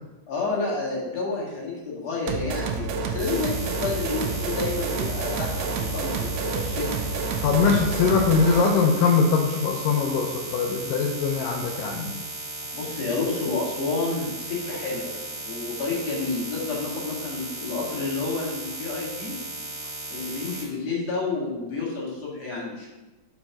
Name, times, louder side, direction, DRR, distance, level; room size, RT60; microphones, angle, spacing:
voice 1, 0.3-6.9 12.7-19.3 20.1-22.9, left 3 dB, 55° left, -4 dB, 2.8 m, -30 dB
sound 1, 2.3-8.8, right 4 dB, 85° right, 1.5 m, -29 dB
sound 2, 3.2-20.6, right 1 dB, 45° right, 1.3 m, -36 dB
voice 2, 7.4-12.2, left 5 dB, 90° left, 0 dB, 2.3 m, -22 dB
5.6 x 4.5 x 5.7 m, 1.1 s
omnidirectional pair, 3.7 m